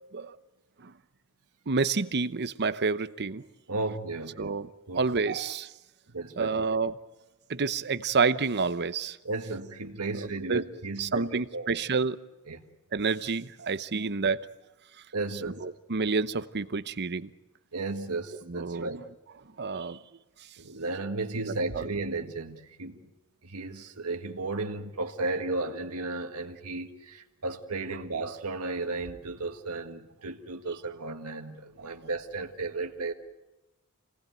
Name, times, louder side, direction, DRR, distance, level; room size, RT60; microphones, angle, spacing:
voice 1, 1.7-3.4 4.4-4.7 4.9-5.7 6.4-6.9 7.5-9.2 10.2-10.6 11.0-12.2 12.9-14.4 15.6-17.3 18.5-18.9 19.6-20.0 21.5-21.8, right 4 dB, 50° right, 0.9 m, -29 dB
voice 2, 3.7-4.5 4.9-5.1 6.1-6.7 9.2-11.8 12.5-12.7 13.9-14.0 15.1-15.6 17.7-19.0 20.6-23.0 23.4-33.1, right 3 dB, 85° right, 1.8 m, -34 dB
27.0 x 18.5 x 9.2 m
head